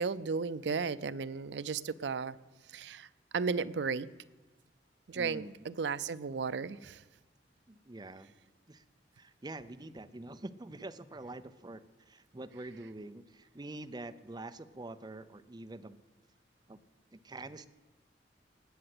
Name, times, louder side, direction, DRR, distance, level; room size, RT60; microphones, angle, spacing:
voice 1, 0.0-2.4 2.7-3.1 3.3-4.1 5.1-7.0, right 5 dB, 75° right, 16 dB, 0.5 m, -34 dB
voice 2, 5.1-5.6 7.7-8.3 8.7-8.8 9.2-16.0 16.7-16.8 17.1-17.7, right 2 dB, 25° right, 11 dB, 0.6 m, -46 dB
19.5 x 7.7 x 7.8 m, 1.2 s
head